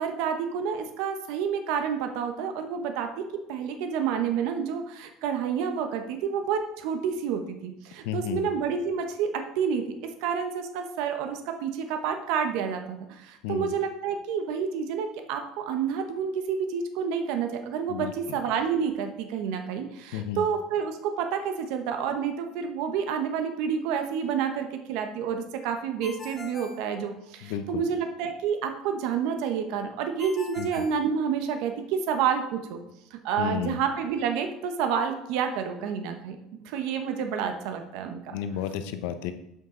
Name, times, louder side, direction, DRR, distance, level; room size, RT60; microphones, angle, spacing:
voice 1, 0.0-3.2 3.5-32.8 33.1-36.4 36.6-38.2, right 7 dB, 70° right, 6 dB, 0.9 m, -29 dB
voice 2, 8.0-8.5 13.4-13.7 17.9-18.4 20.1-20.5 27.4-27.8 30.6-30.9 33.4-33.8 38.3-39.3, left 9 dB, 85° left, 9 dB, 0.8 m, -32 dB
Ringtone, 26.0-27.7 30.2-31.8, left 4 dB, 20° left, 0.7 m, -44 dB
7.7 x 5.6 x 3.8 m, 0.83 s
cardioid pair, 140°, 0 cm